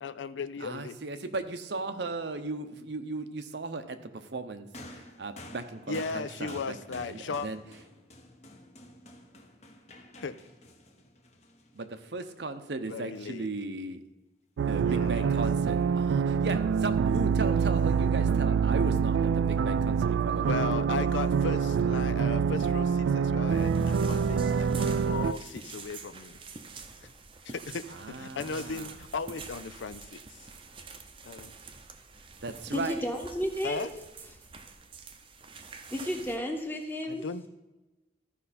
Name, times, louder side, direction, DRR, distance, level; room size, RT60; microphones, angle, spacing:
voice 1, 0.0-1.0 5.9-7.5 10.2-10.4 12.9-13.5 14.8-15.4 20.4-26.4 27.5-27.8 28.2-30.4 31.2-31.5 33.6-33.9 37.1-37.5, left 5 dB, 85° left, 14 dB, 0.5 m, -36 dB
voice 2, 0.6-7.6 11.7-14.0 14.6-20.8 27.9-29.0 32.4-33.0, right 3 dB, 70° right, 9 dB, 0.8 m, -36 dB
sound 1, 4.7-12.2 13.2-13.4, left 1 dB, 35° left, 1.0 m, -50 dB
sound 2, 14.6-25.3, right 6 dB, 90° right, 0.3 m, -26 dB
sound 3, 23.5-36.4, right 4 dB, 30° right, 0.6 m, -47 dB
voice 3, 32.7-33.9 35.9-37.2, equal, 10° left, 3 dB, 1.1 m, -32 dB
14.0 x 5.4 x 4.2 m, 1.1 s
head